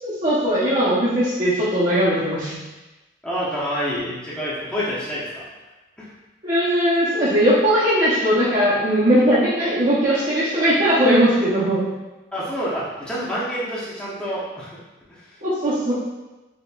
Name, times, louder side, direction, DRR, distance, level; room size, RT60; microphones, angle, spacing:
voice 1, 0.0-2.6 6.4-11.9 15.4-15.9, equal, 40° right, -12 dB, 0.7 m, -19 dB
voice 2, 3.2-5.5 6.0-6.1 12.3-14.8 15.1-15.3, equal, 5° left, -9 dB, 0.8 m, -28 dB
4.1 x 2.9 x 2.3 m, 1.1 s
head